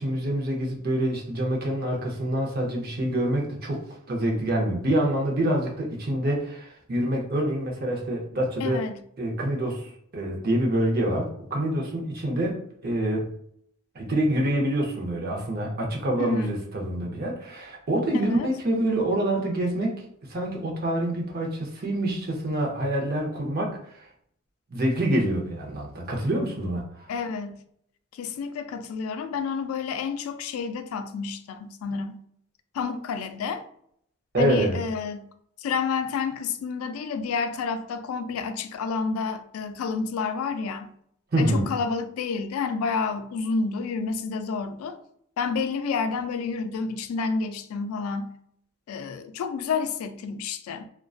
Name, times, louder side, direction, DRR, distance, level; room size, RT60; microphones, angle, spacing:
voice 1, 0.0-3.8 4.1-8.8 9.2-13.3 13.9-20.0 20.3-24.1 24.7-27.1 34.3-34.8 41.3-41.6, right 1 dB, 45° right, 0.6 m, -26 dB
voice 2, 8.6-9.0 16.2-16.6 18.2-18.5 27.1-27.6 28.1-32.2 32.7-33.6 34.4-35.3 35.6-40.9 41.4-45.0 45.4-48.3 48.9-50.9, left 5 dB, 90° left, 0.3 m, -29 dB
2.4 x 2.2 x 2.3 m
head